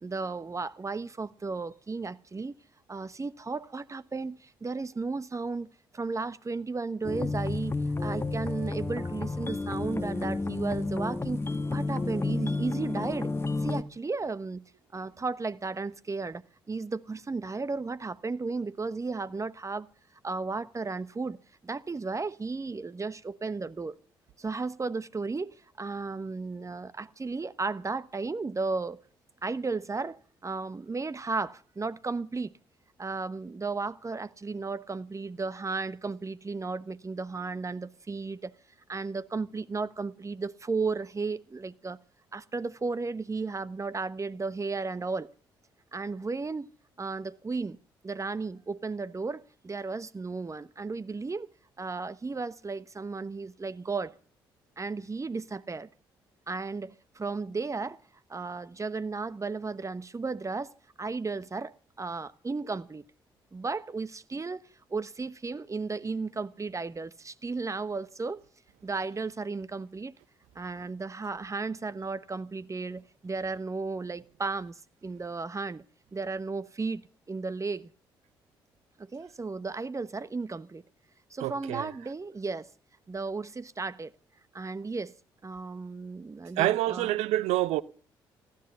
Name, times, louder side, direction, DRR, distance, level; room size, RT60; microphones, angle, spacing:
voice 1, 0.0-2.5 2.9-5.7 5.9-7.7 8.0-11.4 11.7-13.3 13.6-14.6 14.9-19.9 20.2-24.0 24.4-29.0 29.4-30.2 30.4-32.5 33.0-38.5 38.9-42.0 42.3-45.3 45.9-46.7 47.0-47.8 48.0-51.5 51.8-54.2 54.8-55.9 56.5-58.0 58.3-63.0 63.5-68.4 68.8-70.1 70.5-75.8 76.1-77.0 77.3-77.9 79.0-80.8 81.3-82.7 83.1-84.1 84.5-85.1 85.4-87.2, right 4 dB, 25° right, 1.1 m, -34 dB
sound 1, 7.0-13.8, left 3 dB, 20° left, 1.4 m, -31 dB
voice 2, 81.4-81.9 86.6-87.8, right 15 dB, 70° right, 0.8 m, -27 dB
16.0 x 12.5 x 6.9 m
hypercardioid pair, 45°, 12 cm